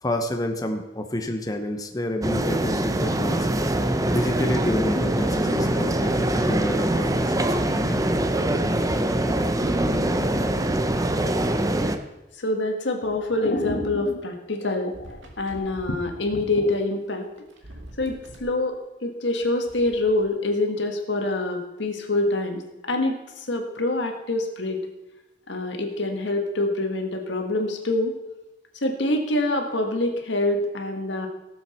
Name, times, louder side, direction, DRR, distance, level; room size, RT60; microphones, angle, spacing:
voice 1, 0.0-3.5 4.1-8.0 9.3-9.4, left 1 dB, 20° left, 4 dB, 0.8 m, -29 dB
sound 1, 2.2-12.0, right 1 dB, 20° right, 0.6 m, -23 dB
voice 2, 12.4-17.3 18.0-24.8 25.5-28.1 28.8-31.3, left 2 dB, 85° left, 4 dB, 1.7 m, -25 dB
sound 2, 14.9-16.0 17.1-17.2 17.4-18.5 19.4-20.3, right 1 dB, 90° right, 2.0 m, -44 dB
17.5 x 7.2 x 4.3 m, 1.0 s
head